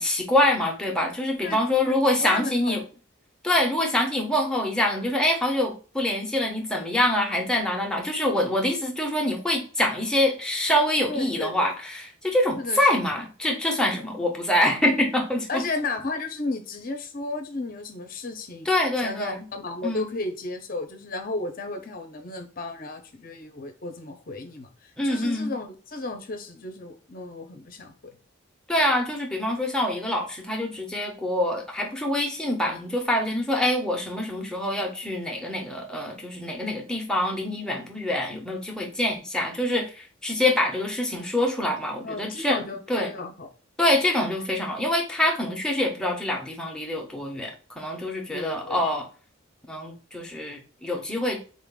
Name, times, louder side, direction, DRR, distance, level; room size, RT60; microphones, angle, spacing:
voice 1, 0.0-2.8 3.4-15.6 18.7-19.5 19.8-20.1 25.0-25.5 28.7-43.1 43.8-49.1 49.7-51.4, left 1 dB, 5° left, 0 dB, 0.7 m, -25 dB
voice 2, 1.8-2.9 11.1-11.7 12.6-12.8 15.5-18.7 19.0-28.2 42.0-43.5 48.3-48.8, left 2 dB, 40° left, 6 dB, 0.7 m, -34 dB
4.0 x 2.5 x 3.6 m, 0.37 s
head